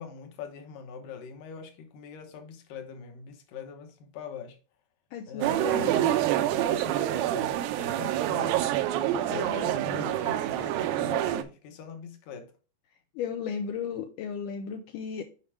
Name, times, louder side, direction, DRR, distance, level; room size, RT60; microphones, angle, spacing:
voice 1, 0.0-4.6 5.3-6.1 6.3-8.6 9.1-12.5, left 6 dB, 70° left, 2.3 m, -42 dB
voice 2, 5.1-6.2 13.2-15.2, left 7 dB, 85° left, 1.9 m, -35 dB
sound 1, 5.4-11.4, right 12 dB, 80° right, 2.2 m, -27 dB
7.3 x 5.1 x 3.3 m
omnidirectional pair, 4.5 m